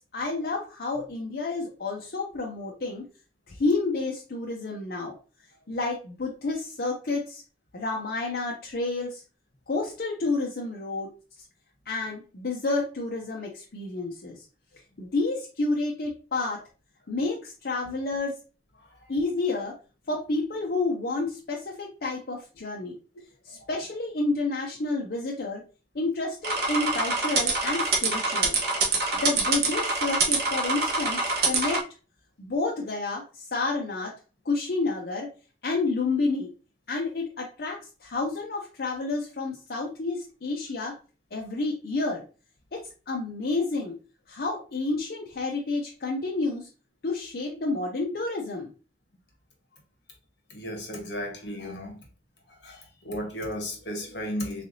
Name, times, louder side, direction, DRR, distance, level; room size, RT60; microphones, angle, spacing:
voice 1, 0.1-3.0 3.5-5.1 5.7-7.4 7.7-9.2 9.7-11.1 11.9-14.4 15.0-16.6 17.1-18.3 19.1-19.7 20.1-22.9 23.4-25.6 25.9-28.6 29.2-31.8 32.4-34.1 34.5-35.3 35.6-36.5 36.9-40.9 41.3-42.2 42.7-42.8 43.1-43.9 44.3-46.7 47.0-48.7, left 3 dB, 55° left, 0.6 m, -30 dB
sound 1, 26.4-31.8, right 3 dB, 60° right, 1.0 m, -25 dB
voice 2, 50.5-52.0 52.6-54.6, equal, 70° left, 1.2 m, -34 dB
3.8 x 3.3 x 2.6 m
head